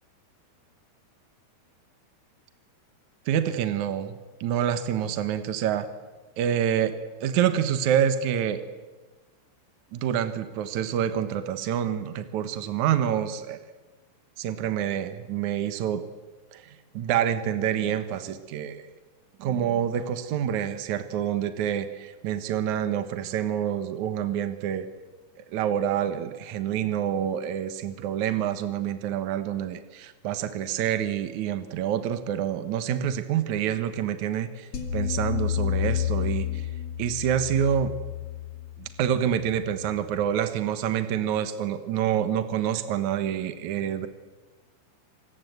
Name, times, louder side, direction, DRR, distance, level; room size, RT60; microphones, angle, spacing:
voice 1, 3.3-4.2 4.4-5.9 6.4-6.9 7.2-8.6 9.9-13.6 14.4-16.0 16.5-18.9 19.4-24.9 25.5-36.7 37.0-37.9 38.8-44.1, right 9 dB, 85° right, 10 dB, 1.6 m, -27 dB
sound 1, 34.7-40.0, left 10 dB, 40° left, 2.9 m, -30 dB
27.0 x 20.5 x 8.0 m, 1.2 s
omnidirectional pair, 5.3 m